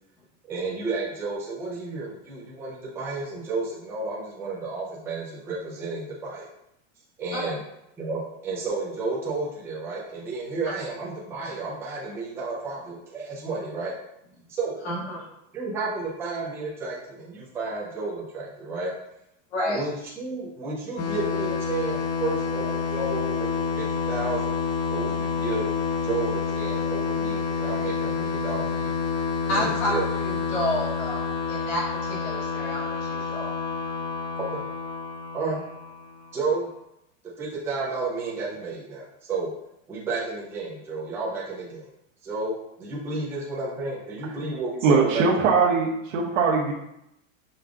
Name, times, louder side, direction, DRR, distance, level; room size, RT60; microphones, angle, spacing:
voice 1, 0.5-6.5 7.2-7.6 8.0-13.9 14.5-14.8 15.5-18.9 19.6-23.5 23.8-24.5 24.9-25.8 26.0-28.9 29.5-30.0 34.4-34.6 35.3-35.6 36.3-36.7 37.4-39.5 39.9-41.9 42.2-45.5, right 3 dB, 5° right, -6 dB, 0.3 m, -32 dB
voice 2, 14.8-15.3 19.5-19.8 29.5-33.5, left 1 dB, 55° left, -6 dB, 1.6 m, -30 dB
sound 1, 21.0-36.4, left 5 dB, 85° left, 0.9 m, -28 dB
voice 3, 44.8-46.7, right 5 dB, 75° right, -1 dB, 1.0 m, -21 dB
5.1 x 2.4 x 3.5 m, 0.83 s
supercardioid pair, 160°, 39 cm